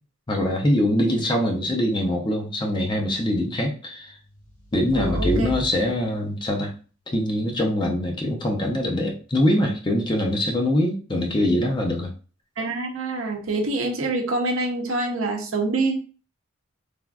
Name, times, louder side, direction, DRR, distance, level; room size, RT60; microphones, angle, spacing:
voice 1, 0.3-4.2 4.7-6.7 7.1-12.1, left 1 dB, 20° left, 1 dB, 0.5 m, -23 dB
sound 1, 4.1-6.5, equal, 40° left, 1.1 m, -32 dB
voice 2, 4.9-5.5 12.6-15.9, right 2 dB, 70° right, 2 dB, 0.7 m, -26 dB
3.4 x 2.5 x 2.3 m, 0.38 s
head